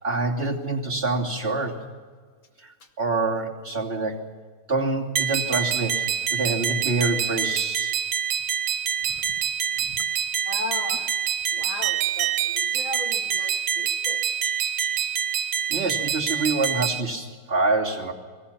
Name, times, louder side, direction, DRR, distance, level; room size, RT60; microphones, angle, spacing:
voice 1, 0.0-1.8 2.6-2.7 3.0-4.3 4.7-7.9 15.7-18.1, right 3 dB, 30° right, -3 dB, 3.0 m, -26 dB
sound 1, 5.2-17.0, right 8 dB, 80° right, 1.7 m, -26 dB
voice 2, 9.0-10.0 10.4-11.1 11.5-14.2, left 2 dB, 75° left, 1 dB, 3.0 m, -37 dB
29.0 x 20.0 x 5.8 m, 1.5 s
omnidirectional pair, 2.2 m